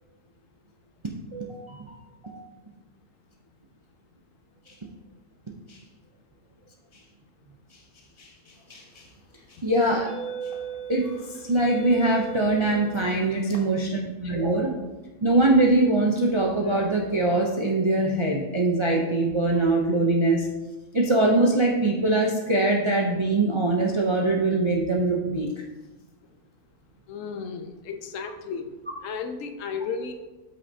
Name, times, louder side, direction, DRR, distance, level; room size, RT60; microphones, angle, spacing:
voice 1, 1.3-2.0 2.2-2.4 8.7-8.8 9.6-10.1 10.9-11.0 11.4-14.7 15.2-20.5 20.9-25.5, right 2 dB, 40° right, -1 dB, 0.4 m, -22 dB
sound 1, 8.8-9.0 9.8-13.6, right 7 dB, 45° left, 0.9 m, -37 dB
voice 2, 27.1-28.8 29.0-30.2, left 5 dB, 70° left, 7 dB, 0.9 m, -34 dB
8.5 x 5.7 x 2.7 m, 1.1 s
omnidirectional pair, 1.5 m